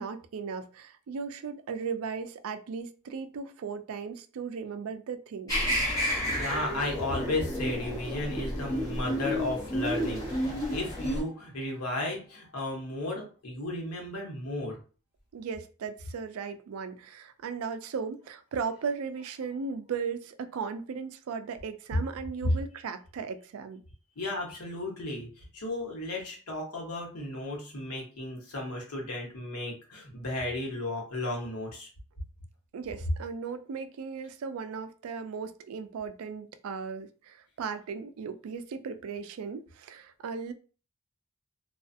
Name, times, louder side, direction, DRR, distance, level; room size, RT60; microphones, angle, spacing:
voice 1, 0.0-5.6 15.3-23.8 32.7-40.5, right 5 dB, 65° right, 9 dB, 0.3 m, -37 dB
sound 1, 5.5-11.2, equal, 15° left, 1.1 m, -31 dB
voice 2, 6.3-14.8 24.2-31.9, left 1 dB, 85° left, 0 dB, 1.0 m, -34 dB
2.4 x 2.3 x 2.5 m, 0.37 s
head